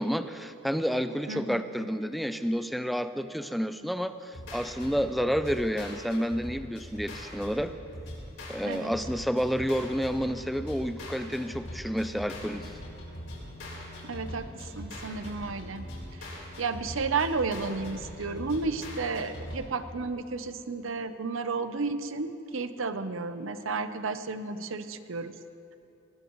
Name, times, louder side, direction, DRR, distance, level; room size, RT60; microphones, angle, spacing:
voice 1, 0.0-7.7 8.5-12.7, equal, ahead, 10 dB, 0.4 m, -30 dB
voice 2, 1.3-1.7 8.6-8.9 14.0-25.3, right 4 dB, 80° right, 10 dB, 0.8 m, -33 dB
sound 1, 4.3-19.7, left 1 dB, 80° left, 4.3 m, -41 dB
20.0 x 19.0 x 3.1 m, 2.7 s
head